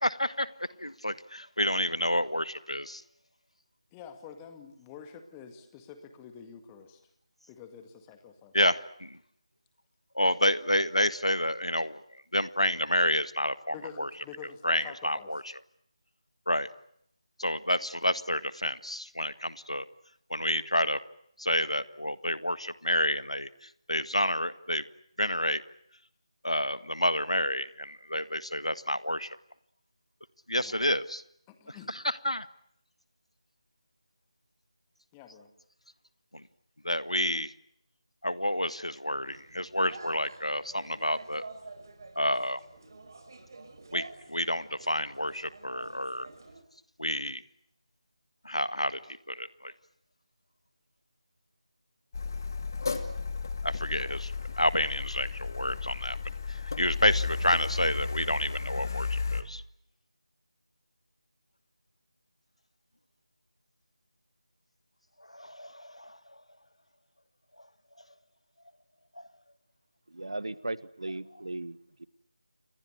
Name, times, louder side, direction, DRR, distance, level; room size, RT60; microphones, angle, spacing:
voice 1, 0.0-0.5 0.8-3.0 8.5-9.2 10.1-12.0 12.3-14.1 14.6-15.4 16.5-16.7 17.4-19.8 20.3-21.0 21.4-24.8 25.2-25.6 26.4-29.4 30.5-31.2 31.9-32.5 36.3-36.4 36.8-37.5 38.2-41.4 42.2-42.6 43.9-46.3 47.0-47.4 48.5-49.0 49.3-49.7 53.6-54.3 54.6-56.2 56.5-59.6 65.3-66.2 69.2-69.3, left 1 dB, 85° left, 14 dB, 1.7 m, -29 dB
voice 2, 3.9-7.1 7.5-8.6 13.7-15.3 30.6-30.8 31.5-31.9 35.1-35.5, left 7 dB, 10° left, 7 dB, 2.0 m, -47 dB
sound 1, 39.2-46.6, right 3 dB, 40° right, 5.2 m, -49 dB
Car, 52.1-59.4, left 4 dB, 35° left, 2.6 m, -33 dB
voice 3, 70.1-72.1, right 2 dB, 60° right, 18 dB, 1.4 m, -37 dB
29.0 x 23.0 x 8.1 m, 0.71 s
figure-of-eight pair, 160°, 3 cm